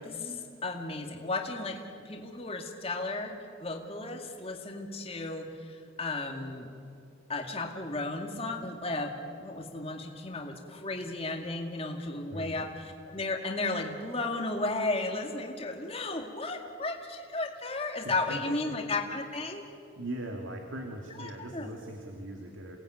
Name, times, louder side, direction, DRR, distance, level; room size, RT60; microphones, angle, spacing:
voice 1, 0.0-3.3 3.6-6.7 7.3-19.7 21.2-21.7, left 2 dB, 30° left, 2 dB, 2.1 m, -34 dB
voice 2, 12.3-12.7 18.0-18.8 20.0-22.8, right 1 dB, 75° right, 3 dB, 2.3 m, -40 dB
28.0 x 18.5 x 9.5 m, 2.5 s
head